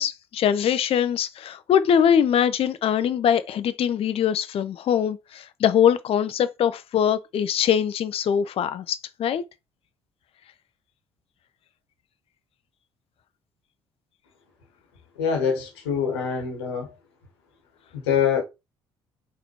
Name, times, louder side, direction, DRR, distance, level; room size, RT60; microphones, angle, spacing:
voice 1, 0.0-9.4, left 9 dB, 45° left, 0.5 m, -22 dB
voice 2, 15.2-16.9 17.9-18.4, left 7 dB, 80° left, 1.2 m, -24 dB
4.2 x 4.0 x 3.0 m
hypercardioid pair, 50°, 13 cm